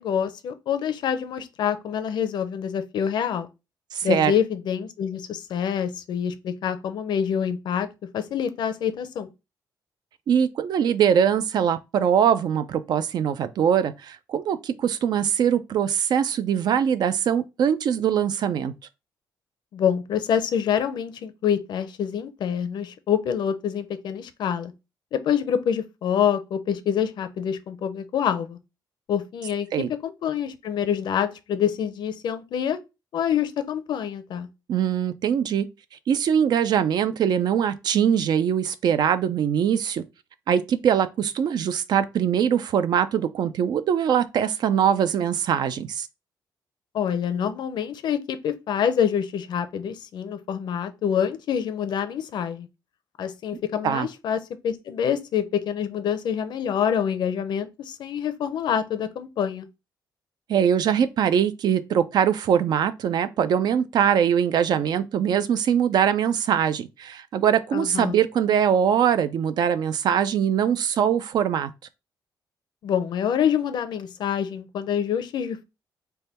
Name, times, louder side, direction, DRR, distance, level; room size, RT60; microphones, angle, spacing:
voice 1, 0.0-3.5 4.0-7.9 8.1-9.3 19.7-24.7 25.1-28.6 29.1-29.7 30.0-32.8 33.1-34.5 46.9-52.7 53.2-59.7 67.7-68.2 72.8-75.6, left 8 dB, 65° left, 0.5 m, -26 dB
voice 2, 3.9-4.3 10.3-18.7 29.7-29.9 34.7-35.7 36.1-40.0 40.5-46.1 53.8-54.1 60.5-71.7, right 8 dB, 60° right, 0.4 m, -22 dB
3.4 x 2.2 x 4.2 m
cardioid pair, 125°, 8 cm